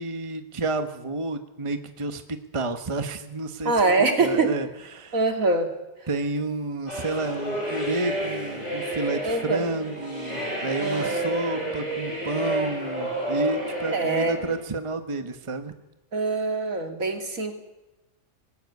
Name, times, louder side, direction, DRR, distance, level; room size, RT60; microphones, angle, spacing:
voice 1, 0.0-3.7 4.2-5.2 6.1-15.7, right 2 dB, 25° right, 8 dB, 1.2 m, -30 dB
voice 2, 3.6-4.5 5.1-5.7 9.2-9.6 10.8-11.7 13.9-14.4 16.1-17.5, right 3 dB, 75° right, 5 dB, 3.1 m, -24 dB
sound 1, 6.9-14.6, right 1 dB, 55° left, 7.9 m, -30 dB
20.0 x 17.0 x 9.6 m, 0.99 s
omnidirectional pair, 1.4 m